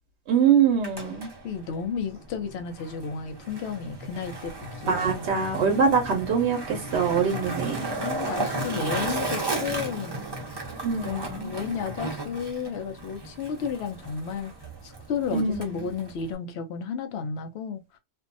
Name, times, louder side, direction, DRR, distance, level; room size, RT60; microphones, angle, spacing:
voice 1, 0.3-1.3 4.9-7.9 10.8-11.5 15.3-15.9, right 6 dB, 80° right, 0.9 m, -24 dB
Skateboard, 0.6-16.3, right 2 dB, 25° right, 0.6 m, -35 dB
voice 2, 1.4-5.3 7.2-7.4 8.0-10.2 11.0-14.5 14.8-18.0, left 6 dB, 75° left, 0.8 m, -33 dB
2.6 x 2.2 x 2.5 m
omnidirectional pair, 1.1 m